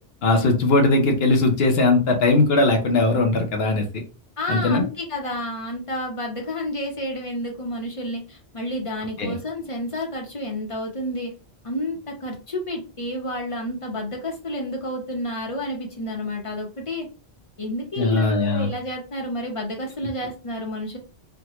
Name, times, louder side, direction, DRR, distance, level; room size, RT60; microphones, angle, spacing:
voice 1, 0.2-4.0 4.5-4.8 9.2-9.4 18.0-18.7, left 2 dB, 60° left, 4 dB, 0.9 m, -19 dB
voice 2, 4.4-11.3 11.6-17.1 17.6-21.0, left 1 dB, 30° left, 1 dB, 0.7 m, -30 dB
3.5 x 2.2 x 2.9 m, 0.33 s
omnidirectional pair, 1.2 m